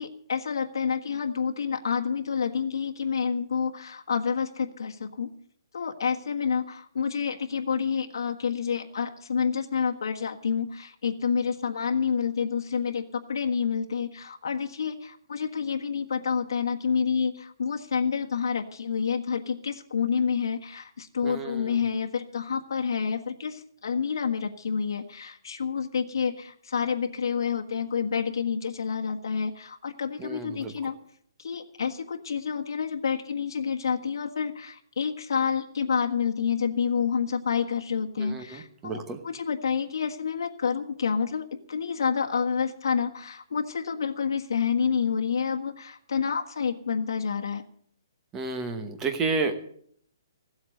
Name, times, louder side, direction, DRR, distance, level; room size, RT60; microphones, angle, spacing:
voice 1, 0.0-5.3 5.7-31.0 31.4-47.6, left 6 dB, 65° left, 3 dB, 1.4 m, -28 dB
voice 2, 21.2-21.7 30.2-30.7 38.2-39.2 48.3-49.5, right 3 dB, 10° right, 6 dB, 1.1 m, -31 dB
16.0 x 8.0 x 7.8 m, 0.63 s
hypercardioid pair, 175°, 2 cm